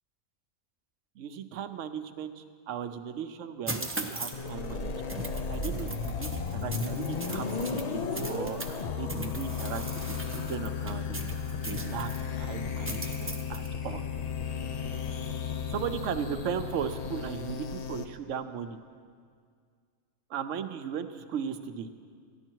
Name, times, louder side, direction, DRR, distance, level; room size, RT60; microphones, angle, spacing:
voice 1, 1.2-4.9 5.5-11.2 11.6-12.1 12.4-14.0 15.7-18.8 20.3-21.9, right 7 dB, 80° right, 9 dB, 1.0 m, -37 dB
sound 1, 3.7-4.5 5.1-8.8 9.1-12.2 12.8-13.7, right 2 dB, 15° right, 0.5 m, -39 dB
sound 2, 4.3-18.0, left 5 dB, 50° left, 0.5 m, -34 dB
14.5 x 11.0 x 4.5 m, 2.1 s
omnidirectional pair, 1.3 m